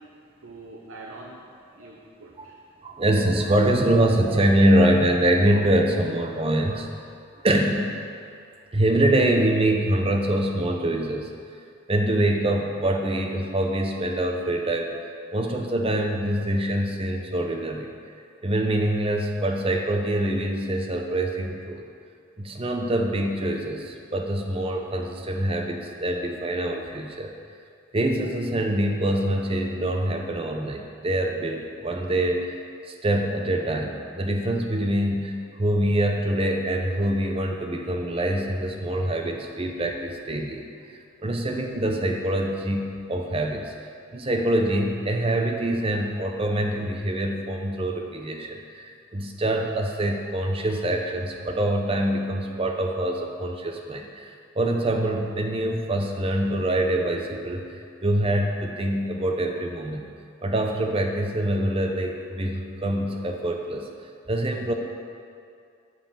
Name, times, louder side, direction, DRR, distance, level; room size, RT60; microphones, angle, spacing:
voice 1, 0.0-2.6, right 2 dB, 65° right, -2 dB, 0.8 m, -45 dB
voice 2, 2.8-6.9 7.4-8.0 8.7-11.3 11.9-14.9 15.3-17.9 18.4-21.8 22.4-27.3 27.9-32.6 32.9-40.6 41.2-43.7 44.1-57.6 58.0-60.0 60.4-63.9 64.3-64.7, right 1 dB, 25° right, 3 dB, 0.7 m, -24 dB
7.7 x 5.6 x 6.9 m, 2.3 s
head